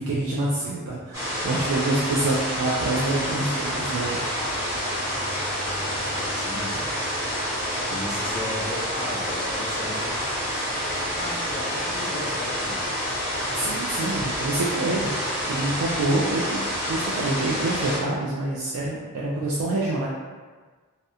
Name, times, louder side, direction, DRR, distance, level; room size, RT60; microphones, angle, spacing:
voice 1, 0.0-4.2 13.5-20.1, right 2 dB, 85° right, -6 dB, 0.4 m, -27 dB
sound 1, 1.1-18.0, equal, 15° right, 1.1 m, -28 dB
sound 2, 2.1-6.2 6.4-6.5 7.0-8.6 8.9-9.5 9.8-10.5, equal, 40° right, 0.7 m, -43 dB
voice 2, 6.1-7.0 7.9-10.1 11.2-12.8, left 1 dB, 25° left, -2 dB, 0.3 m, -35 dB
2.8 x 2.1 x 2.3 m, 1.4 s
head